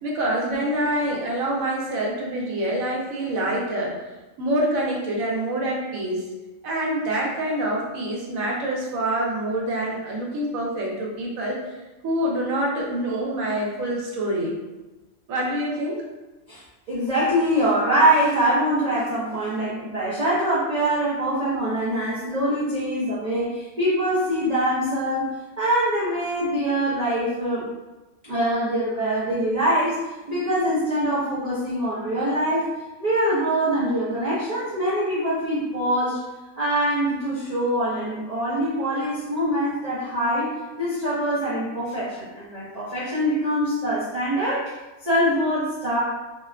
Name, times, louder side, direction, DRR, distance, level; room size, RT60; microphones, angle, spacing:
voice 1, 0.0-3.9 4.4-6.3 6.6-11.6 12.0-14.5 15.3-16.0, right 1 dB, 80° right, -3 dB, 1.1 m, -26 dB
voice 2, 16.9-25.3 25.6-27.6 28.2-30.0 30.3-32.7 33.0-36.2 36.6-40.5 40.8-44.6 45.0-46.0, right 1 dB, 50° right, -9 dB, 0.5 m, -23 dB
2.8 x 2.2 x 2.3 m, 1.1 s
omnidirectional pair, 1.4 m